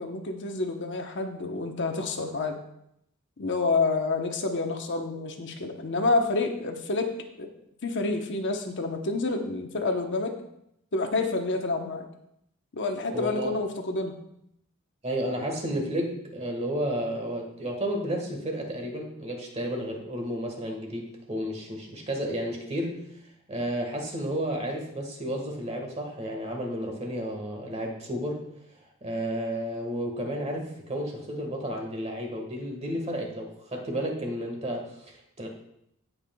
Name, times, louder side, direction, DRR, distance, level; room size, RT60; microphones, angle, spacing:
voice 1, 0.0-2.6 3.4-7.1 7.4-7.5 7.8-10.4 10.9-12.1 12.7-14.1, left 3 dB, 55° left, 4 dB, 1.0 m, -28 dB
voice 2, 13.1-13.5 15.0-23.0 23.5-28.4 28.8-35.5, equal, 30° right, 1 dB, 1.6 m, -32 dB
16.5 x 5.8 x 2.3 m, 0.77 s
head